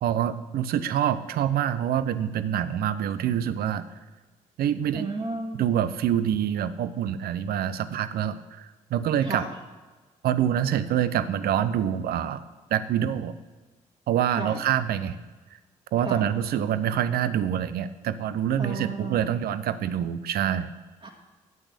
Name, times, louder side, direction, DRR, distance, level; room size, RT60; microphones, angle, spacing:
voice 1, 0.0-3.8 4.6-5.1 5.5-9.4 10.2-12.4 12.7-13.3 14.1-15.2 15.9-20.7, right 10 dB, 65° right, 14 dB, 0.7 m, -26 dB
voice 2, 4.9-5.7 9.2-9.5 14.4-14.6 16.1-16.3 18.6-19.3 21.0-21.1, right 3 dB, 35° right, -2 dB, 1.7 m, -33 dB
9.4 x 8.1 x 8.2 m, 1.3 s
hypercardioid pair, 50°, 17 cm